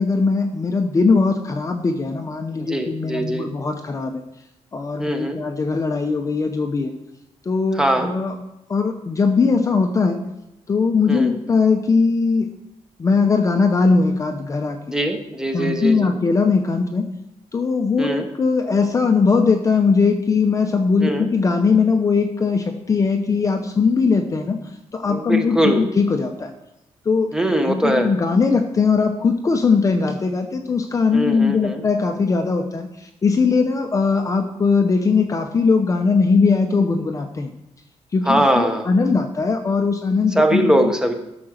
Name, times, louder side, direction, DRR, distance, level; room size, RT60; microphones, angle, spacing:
voice 1, 0.0-4.2 4.7-6.9 7.5-8.4 8.7-10.2 10.7-12.5 13.0-14.8 15.5-17.1 17.5-24.6 24.9-26.5 27.1-27.3 27.7-37.5 38.1-40.9, left 4 dB, 25° left, 5 dB, 0.8 m, -20 dB
voice 2, 2.7-3.5 5.0-5.4 7.8-8.1 11.1-11.3 14.9-16.1 18.0-18.3 21.0-21.3 25.1-25.8 27.3-28.1 31.1-31.8 38.2-38.9 40.3-41.1, right 1 dB, 5° right, 5 dB, 1.2 m, -21 dB
12.5 x 6.0 x 6.6 m, 0.88 s
wide cardioid pair, 175°, 12 cm